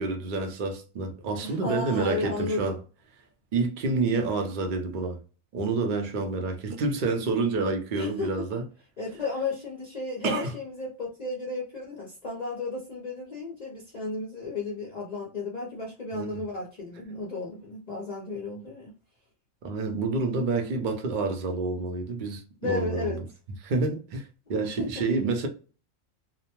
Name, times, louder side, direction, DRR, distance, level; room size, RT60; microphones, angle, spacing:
voice 1, 0.0-2.8 3.5-5.2 5.5-8.6 10.2-10.5 16.1-16.4 19.6-23.2 23.6-25.5, right 3 dB, 50° right, 0.6 m, -28 dB
voice 2, 1.4-2.8 7.9-8.5 9.0-18.9 22.6-23.2 24.8-25.0, left 3 dB, 45° left, 0.6 m, -33 dB
2.6 x 2.1 x 2.9 m
omnidirectional pair, 1.4 m